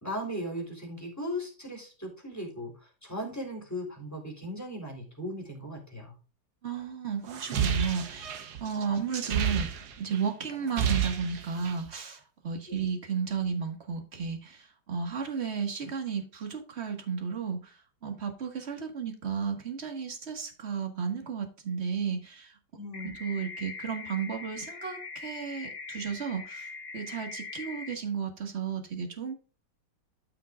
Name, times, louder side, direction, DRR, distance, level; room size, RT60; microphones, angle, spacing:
voice 1, 0.0-6.2 12.7-12.8 22.7-23.2, equal, 10° left, 3.7 m, -37 dB
voice 2, 6.6-9.7 10.0-22.5 23.0-29.3, right 6 dB, 35° right, 1.9 m, -33 dB
sound 1, 7.3-10.2 10.5-11.9, right 8 dB, 65° right, 1.5 m, -30 dB
sound 2, 22.9-27.9, left 4 dB, 30° left, 1.6 m, -42 dB
13.5 x 5.8 x 2.4 m
omnidirectional pair, 2.0 m